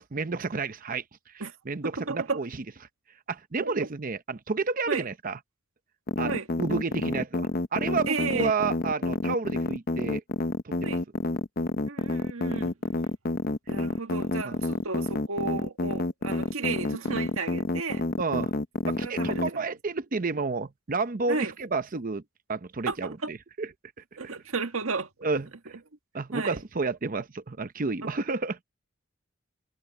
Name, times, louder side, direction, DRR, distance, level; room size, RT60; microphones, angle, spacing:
voice 1, 0.0-2.5 3.3-5.4 6.2-10.2 10.6-11.0 14.4-14.6 18.2-18.5 18.8-22.2 22.5-23.7 24.0-24.1 25.2-25.8 26.1-28.6, right 4 dB, 40° right, 0.7 m, -31 dB
voice 2, 2.1-2.4 3.6-3.7 4.9-5.0 6.2-6.5 8.1-8.5 10.8-11.0 11.9-12.7 13.7-18.0 19.0-19.7 21.3-21.5 22.9-23.3 24.2-25.1 26.3-26.6 28.0-28.1, right 4 dB, 90° right, 1.8 m, -33 dB
sound 1, 6.1-19.5, left 2 dB, 45° left, 0.8 m, -28 dB
head